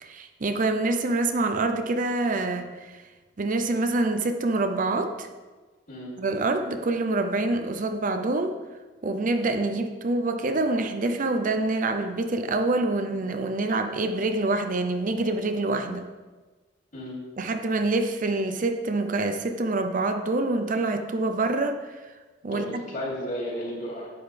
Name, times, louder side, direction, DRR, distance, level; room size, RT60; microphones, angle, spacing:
voice 1, 0.0-3.0 3.4-5.3 6.2-8.6 9.0-16.0 17.4-22.0 22.4-22.7, right 2 dB, 45° right, 7 dB, 0.6 m, -26 dB
voice 2, 22.5-24.1, equal, 45° left, -4 dB, 3.0 m, -33 dB
10.5 x 8.7 x 3.4 m, 1.3 s
head